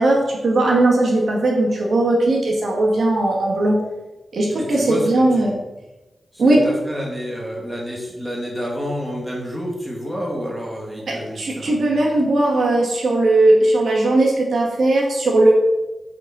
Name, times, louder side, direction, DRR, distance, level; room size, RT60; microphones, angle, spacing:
voice 1, 0.0-3.8 4.3-5.6 6.4-6.6 11.1-15.5, right 2 dB, 65° right, -2 dB, 2.3 m, -18 dB
voice 2, 4.6-5.5 6.3-12.1, equal, ahead, -3 dB, 2.1 m, -29 dB
8.2 x 7.1 x 4.2 m, 1.0 s
wide cardioid pair, 140°, 0 cm